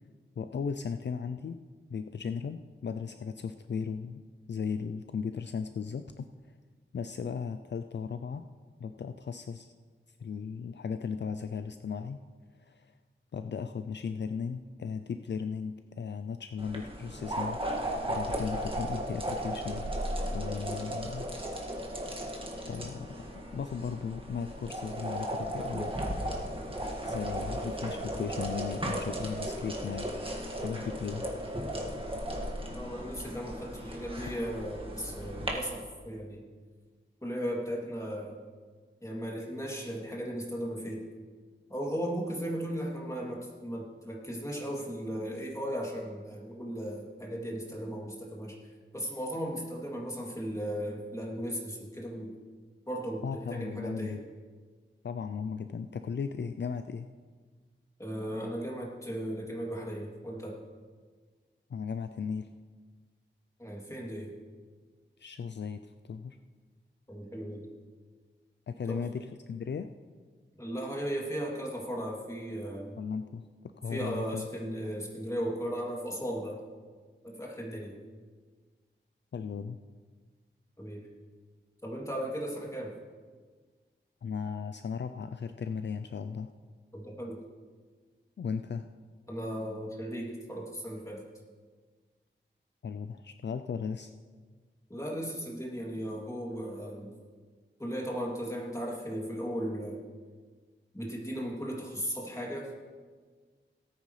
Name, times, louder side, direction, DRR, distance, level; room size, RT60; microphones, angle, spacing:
voice 1, 0.4-1.6 1.9-6.3 6.9-8.5 8.8-9.7 10.2-12.2 12.6-12.9 13.3-17.6 18.1-19.9 20.3-21.3 22.6-23.1 23.5-25.9 27.1-30.1 30.6-31.3 53.2-54.2 55.0-57.1 61.7-62.5 65.2-66.4 68.7-69.9 73.0-73.4 73.8-74.4 79.3-79.8 84.2-86.5 88.4-88.8 92.8-94.1, left 6 dB, 60° left, 9 dB, 0.4 m, -36 dB
sound 1, 16.6-35.5, right 1 dB, 25° right, 1.9 m, -36 dB
voice 2, 32.7-36.4 37.2-38.4 39.0-41.0 41.7-48.6 48.9-52.3 52.9-54.2 58.0-60.6 63.6-64.3 67.1-67.7 68.9-69.0 70.6-72.9 73.9-76.6 77.2-77.9 80.8-81.1 81.8-82.9 86.9-87.4 89.3-91.2 94.9-97.1 97.8-100.0 100.9-102.8, equal, 15° left, -3 dB, 2.8 m, -36 dB
17.5 x 9.2 x 3.3 m, 1.5 s
wide cardioid pair, 75°, 20 cm